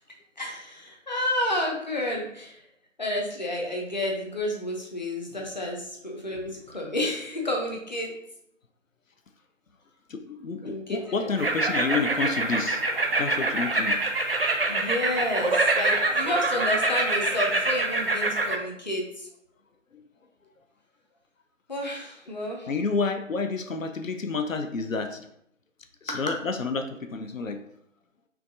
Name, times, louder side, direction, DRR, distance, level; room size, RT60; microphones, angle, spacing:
voice 1, 0.4-2.6 3.0-8.1 10.6-11.3 14.7-19.3 21.7-22.7 26.1-26.2, left 1 dB, 35° left, 0 dB, 0.6 m, -30 dB
voice 2, 10.1-12.8 13.2-14.0 22.7-25.3 26.0-27.6, left 4 dB, 85° left, 7 dB, 0.5 m, -29 dB
sound 1, 11.4-18.6, right 2 dB, 50° right, 0.4 m, -25 dB
5.7 x 2.3 x 2.5 m, 0.73 s
figure-of-eight pair, 155°, 39 cm